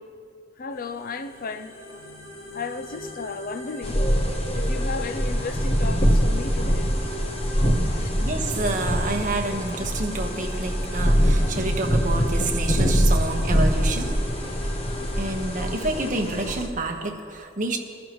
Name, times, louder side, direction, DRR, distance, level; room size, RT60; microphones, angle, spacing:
voice 1, 0.6-2.1 2.5-7.2 7.5-8.1, left 4 dB, 45° left, 0.5 m, -35 dB
sound 1, 0.7-16.1, left 1 dB, 80° left, 2.1 m, -40 dB
sound 2, 3.8-16.7, equal, 30° left, 1.1 m, -23 dB
voice 2, 8.2-14.2 15.2-17.8, right 2 dB, 45° right, 1.3 m, -28 dB
22.0 x 11.0 x 3.1 m
head